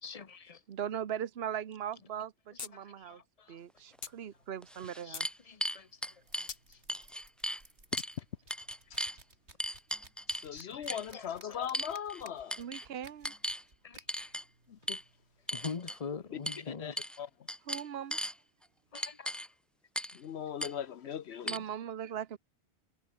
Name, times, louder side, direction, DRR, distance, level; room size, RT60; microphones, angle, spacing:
voice 1, 0.0-0.6 2.0-2.1 2.5-3.6 5.0-5.9 10.5-11.6 13.8-14.0 15.5-17.0 18.9-19.3 20.5-20.8 21.3-21.5, left 5 dB, 35° left, 1.0 m, -44 dB
voice 2, 0.7-3.2 3.5-5.3 12.6-13.3 17.7-18.2 21.5-22.4, right 9 dB, 65° right, 1.1 m, -39 dB
sound 1, 2.6-2.7 3.0-3.1 4.0-4.2 4.8-5.3 6.5-6.6 8.0-8.1, left 6 dB, 60° left, 1.4 m, -42 dB
sound 2, 3.8-16.4, right 2 dB, 85° right, 5.9 m, -61 dB
sound 3, 4.0-4.1 4.6-6.5 6.9-7.6 7.9-8.1 8.5-9.2 9.6-10.5 10.9-11.1 11.7-12.2 12.5-12.9 13.2-13.6 14.1-14.4 14.9-15.0 15.5-16.0 16.5-16.6 17.0-17.2 17.5-18.3 19.0-19.5 20.0-20.2 20.6-20.7 21.5-21.6, equal, ahead, 0.9 m, -37 dB
voice 3, 10.3-12.6 14.7-15.0 16.7-16.9 17.2-17.3 20.1-21.6, left 9 dB, 75° left, 1.0 m, -39 dB
omnidirectional pair, 1.1 m